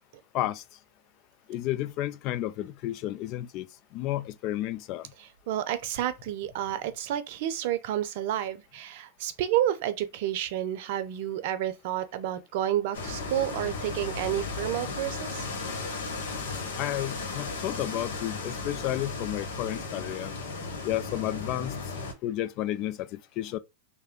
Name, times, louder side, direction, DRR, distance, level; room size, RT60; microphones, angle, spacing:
voice 1, 1.5-3.7 3.9-5.1 16.8-20.3 20.8-21.8 22.2-23.6, left 14 dB, 45° left, 0.4 m, -32 dB
voice 2, 5.2-15.5, right 12 dB, 55° right, 0.6 m, -30 dB
sound 1, 12.9-22.1, left 3 dB, 70° left, 1.0 m, -35 dB
3.3 x 2.1 x 3.6 m
hypercardioid pair, 110°, 0 cm